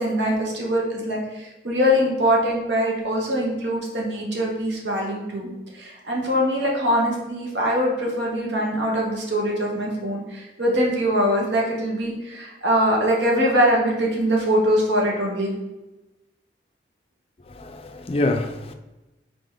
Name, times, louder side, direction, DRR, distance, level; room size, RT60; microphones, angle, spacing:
voice 1, 0.0-15.5, equal, 85° right, 1.1 m, -23 dB
voice 2, 17.5-18.7, left 2 dB, 35° left, 0.3 m, -26 dB
3.8 x 3.4 x 3.9 m
head